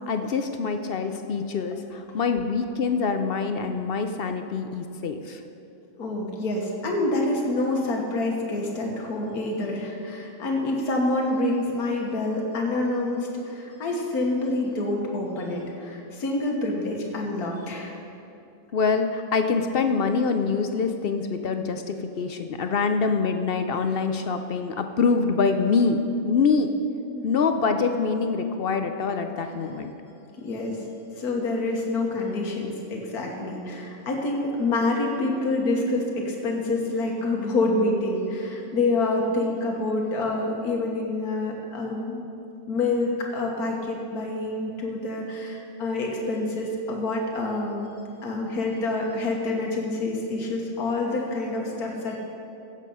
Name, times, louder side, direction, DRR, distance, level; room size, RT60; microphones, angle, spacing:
voice 1, 0.1-5.4 18.7-26.7 27.2-29.9, left 5 dB, 60° left, 7 dB, 0.6 m, -25 dB
voice 2, 6.0-18.0 27.1-27.3 29.4-29.5 30.4-30.8 31.2-42.2 42.7-48.0 48.2-52.2, left 2 dB, 80° left, -1 dB, 1.8 m, -27 dB
15.5 x 7.4 x 5.5 m, 2.7 s
omnidirectional pair, 1.6 m